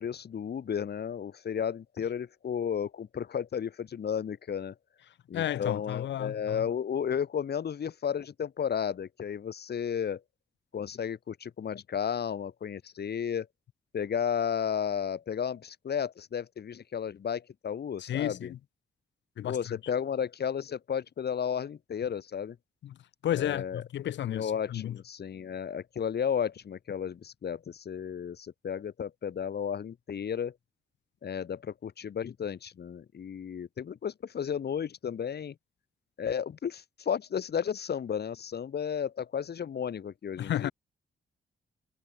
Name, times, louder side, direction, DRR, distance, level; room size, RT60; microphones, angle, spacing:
voice 1, 0.0-4.7 5.3-10.2 10.7-13.5 13.9-18.5 19.5-22.6 23.3-23.8 24.3-30.5 31.2-35.5 36.2-40.7, left 8 dB, 60° left, 2.1 m, -33 dB
voice 2, 5.3-6.7 18.0-18.6 19.4-19.8 22.8-23.0 23.2-25.0 40.4-40.7, left 11 dB, 80° left, 1.9 m, -32 dB
supercardioid pair, 55°, 19 cm